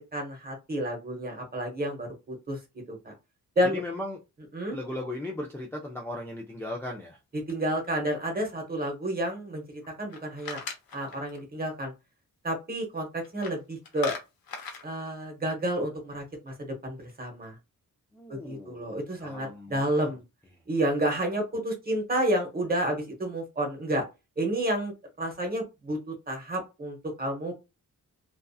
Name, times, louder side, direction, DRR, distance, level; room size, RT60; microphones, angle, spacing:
voice 1, 0.1-2.6 2.9-3.1 3.6-3.8 4.5-4.8 7.5-10.6 10.9-11.9 12.4-14.1 14.8-17.6 18.3-20.2 20.7-24.0 24.4-27.5, right 1 dB, 25° right, 0.8 m, -30 dB
voice 2, 3.7-4.2 4.7-7.2 18.1-20.1, left 1 dB, 5° left, 0.4 m, -37 dB
sound 1, 7.5-8.4 9.8-11.4 13.2-13.6 13.8-14.9, left 5 dB, 85° left, 0.7 m, -39 dB
2.6 x 2.4 x 2.3 m
wide cardioid pair, 140°, 34 cm